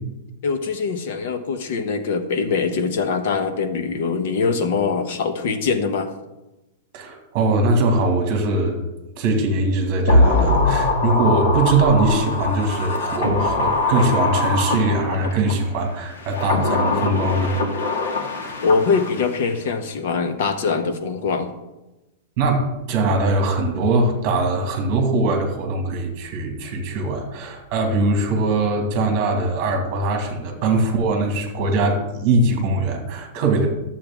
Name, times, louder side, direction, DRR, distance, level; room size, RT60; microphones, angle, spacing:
voice 1, 0.4-6.1 18.6-21.5, left 5 dB, 50° left, 8 dB, 1.0 m, -23 dB
voice 2, 6.9-8.8 9.2-17.5 18.4-18.5 22.4-33.7, right 2 dB, 30° right, 4 dB, 1.9 m, -21 dB
sound 1, 10.1-15.5 16.2-19.4 19.7-19.8, left 2 dB, 75° left, 1.8 m, -22 dB
12.0 x 7.5 x 3.6 m, 1.0 s
supercardioid pair, 175°, 0 cm